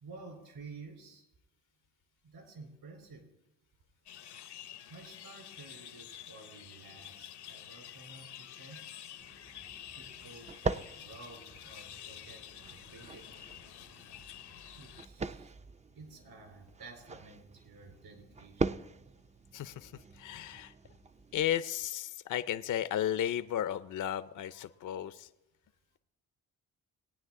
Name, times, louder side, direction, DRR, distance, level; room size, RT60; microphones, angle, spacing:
voice 1, 0.0-1.2 2.2-3.3 4.9-8.8 9.9-12.4 12.7-13.3 14.7-15.5 16.0-18.8, right 3 dB, 70° right, 3 dB, 3.7 m, -52 dB
sound 1, 4.1-15.0, left 11 dB, 75° left, 0.8 m, -49 dB
sound 2, 9.2-21.6, right 4 dB, 20° right, 0.4 m, -42 dB
voice 2, 19.5-20.7 21.3-25.3, left 10 dB, 50° left, 13 dB, 0.5 m, -34 dB
20.5 x 9.2 x 3.7 m, 0.94 s
supercardioid pair, 60°, 40 cm